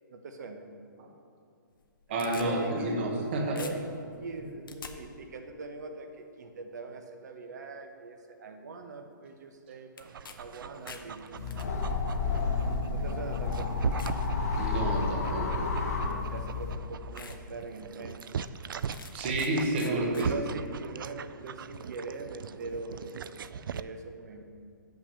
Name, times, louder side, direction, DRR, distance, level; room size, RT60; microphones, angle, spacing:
voice 1, 0.1-0.7 2.1-3.2 3.5-10.1 10.4-12.0 12.9-13.8 16.1-18.4 18.9-19.0 19.8-24.4, right 3 dB, 55° right, 6 dB, 1.0 m, -42 dB
sound 1, 1.7-3.3 3.6-4.9 10.0-10.4 10.7-11.7 12.5-12.6 13.3-13.4 14.0-14.2 14.7-15.1 16.2-16.3 16.7-16.8 17.2-17.4 17.8-17.9 18.9-19.5 19.8-20.3, left 6 dB, 85° left, 0.9 m, -46 dB
voice 2, 2.1-3.6 14.6-15.7 19.1-20.5, right 1 dB, 30° right, 0 dB, 1.0 m, -30 dB
Dog, 10.0-23.8, right 7 dB, 85° right, 0.4 m, -39 dB
sound 2, 11.4-16.8, left 4 dB, 45° left, 1.0 m, -31 dB
7.0 x 5.9 x 7.3 m, 2.4 s
hypercardioid pair, 170°, 11 cm